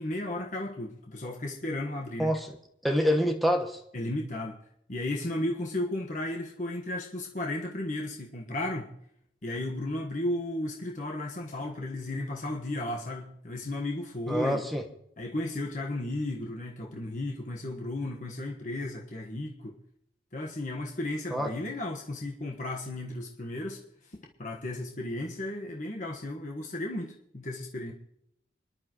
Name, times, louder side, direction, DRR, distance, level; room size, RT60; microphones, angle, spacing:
voice 1, 0.0-2.3 3.9-4.6 4.9-8.9 9.4-14.6 15.2-19.7 20.3-23.8 24.4-27.9, left 1 dB, 45° left, 0 dB, 1.4 m, -34 dB
voice 2, 2.2-2.5 2.8-3.8 14.3-14.8 21.3-21.5, equal, ahead, 2 dB, 1.3 m, -26 dB
27.5 x 11.0 x 3.0 m, 0.76 s
head